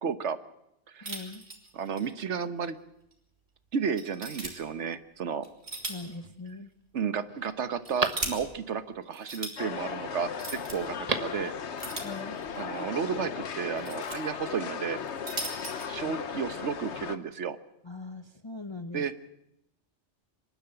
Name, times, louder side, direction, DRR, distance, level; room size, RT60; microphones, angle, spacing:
voice 1, 0.0-0.4 0.9-1.2 1.7-2.8 3.7-5.5 6.9-11.5 12.5-15.0 15.9-17.6 18.9-19.1, right 6 dB, 85° right, 12 dB, 1.4 m, -32 dB
voice 2, 1.0-1.4 5.9-6.7 12.0-12.4 17.8-19.0, left 3 dB, 25° left, 8 dB, 0.9 m, -41 dB
sound 1, 1.0-2.1 2.4-2.5 3.1-3.2 4.0-4.5 5.4-6.1 6.5-6.6 7.5-8.3 9.1-9.5 10.3-10.8 11.8-12.6 13.5-14.2 15.0-15.9, right 2 dB, 70° right, 3.3 m, -38 dB
Telephone, 5.7-6.3 6.8-6.9 7.3-8.8 10.8-11.5 11.7-11.8, right 3 dB, 35° right, 1.5 m, -35 dB
sound 2, 9.6-17.2, left 7 dB, 80° left, 1.3 m, -37 dB
25.5 x 12.0 x 9.0 m, 0.84 s
omnidirectional pair, 1.2 m